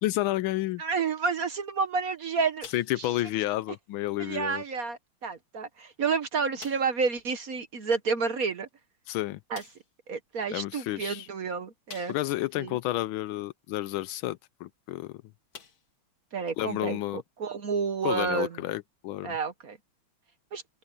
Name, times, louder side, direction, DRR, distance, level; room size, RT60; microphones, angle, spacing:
voice 1, 0.0-0.8 2.7-4.6 9.1-9.4 10.5-11.3 12.1-15.2 16.6-17.2 18.0-19.3, left 15 dB, 75° left, 1.4 m, -30 dB
voice 2, 0.8-2.7 3.0-3.1 4.2-8.7 9.5-9.6 10.1-12.2 12.5-12.8 16.3-18.6 19.2-19.8 20.5-20.6, right 5 dB, 50° right, 1.3 m, -30 dB
sound 1, 2.6-3.3 3.6-3.8 4.3-4.5 5.3-5.4 5.8-5.9 6.6-7.0 8.7-8.8 9.5-9.9 11.9-12.5 13.0-13.1 14.9-15.1 15.5-16.0 16.5-16.6 18.2-18.3, left 6 dB, 50° left, 2.0 m, -48 dB
open air
omnidirectional pair, 2.3 m